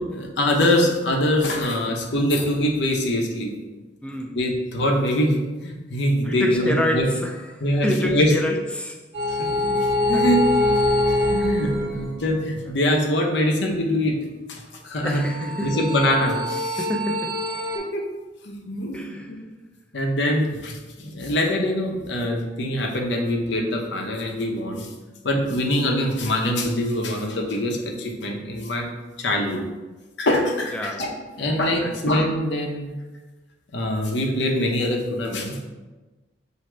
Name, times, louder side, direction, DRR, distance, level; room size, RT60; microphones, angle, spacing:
voice 1, 0.1-3.5 4.3-7.1 7.6-8.3 9.3-9.8 10.0-10.4 11.3-14.2 14.5-15.2 15.6-16.9 17.7-18.1 18.4-19.0 19.3-19.4 19.9-24.9 25.2-28.9 29.2-29.6 30.2-31.1 31.4-32.9 33.7-35.7, left 1 dB, 70° left, 1 dB, 0.8 m, -23 dB
voice 2, 4.0-4.4 6.3-9.0 10.1-10.2 15.0-15.8 16.8-17.4 18.9-19.3 30.7-31.1 31.4-31.9, left 1 dB, 5° left, 2 dB, 0.4 m, -28 dB
sound 1, 9.1-12.4 15.2-17.8, left 1 dB, 75° right, 1.3 m, -24 dB
6.0 x 2.7 x 3.3 m, 1.2 s
head